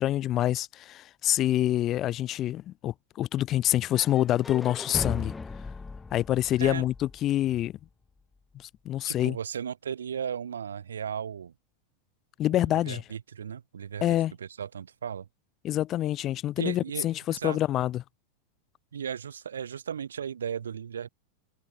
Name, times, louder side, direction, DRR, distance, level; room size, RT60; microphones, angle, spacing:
voice 1, 0.0-5.3 6.1-7.7 8.6-9.4 12.4-13.0 14.0-14.3 15.6-18.0, left 13 dB, 30° left, 1.7 m, -26 dB
sound 1, 3.9-7.9, left 4 dB, 10° left, 4.6 m, -38 dB
voice 2, 9.0-11.5 12.5-15.3 16.6-17.6 18.9-21.1, right 8 dB, 70° right, 5.8 m, -36 dB
figure-of-eight pair, 90°, 0 cm